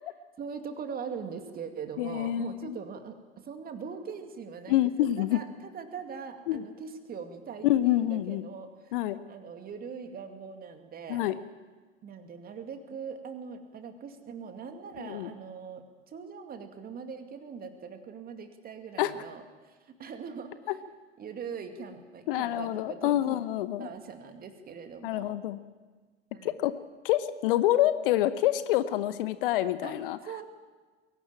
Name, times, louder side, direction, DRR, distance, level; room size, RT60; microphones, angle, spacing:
voice 1, 0.4-9.0 9.3-11.2 12.0-20.8 21.2-23.4 23.8-25.4 26.3-26.6 29.8-30.4, right 6 dB, 25° right, 7 dB, 2.4 m, -41 dB
voice 2, 2.0-2.8 4.7-5.4 6.5-6.6 7.6-8.5 8.9-9.2 11.1-11.4 15.0-15.3 19.0-19.1 22.3-23.9 25.0-25.6 26.4-26.7 27.0-30.2, left 13 dB, 50° left, 14 dB, 0.9 m, -27 dB
22.0 x 17.5 x 8.9 m, 1.4 s
figure-of-eight pair, 85°, 35 cm